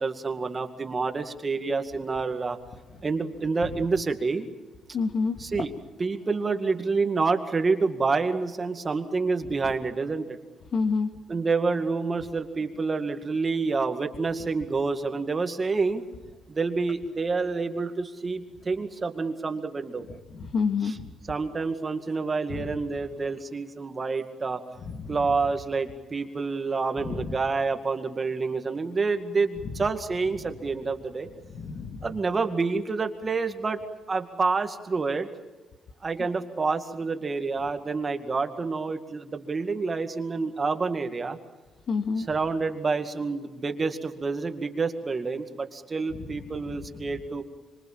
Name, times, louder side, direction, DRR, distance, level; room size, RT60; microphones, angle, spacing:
voice 1, 0.0-2.6 3.0-4.5 5.4-5.7 6.0-10.4 11.3-16.0 16.5-20.1 21.3-24.6 25.1-31.3 32.0-33.8 34.1-35.3 36.0-41.4 42.3-47.4, right 4 dB, 30° right, 7 dB, 2.2 m, -28 dB
voice 2, 4.9-5.6 9.4-9.7 10.7-11.1 20.1-21.1 22.5-22.8 24.8-25.3 27.0-27.4 29.6-29.8 30.4-30.5 31.4-32.2 41.9-42.3 46.1-47.1, left 5 dB, 60° left, 6 dB, 2.4 m, -30 dB
25.5 x 24.5 x 7.5 m, 1.2 s
cardioid pair, 90°, 0 cm